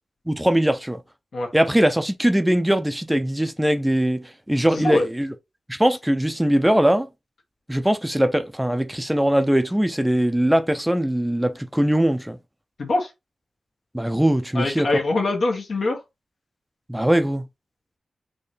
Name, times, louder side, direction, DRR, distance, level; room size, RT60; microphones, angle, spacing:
voice 1, 0.3-1.0 1.5-5.3 5.7-7.1 7.7-12.4 13.9-15.0 16.9-17.4, right 1 dB, 10° right, 0.5 m, -21 dB
voice 2, 4.7-5.1 12.8-13.1 14.5-16.0, left 2 dB, 75° left, 1.6 m, -23 dB
4.4 x 2.8 x 3.4 m
cardioid pair, 65°, 0 cm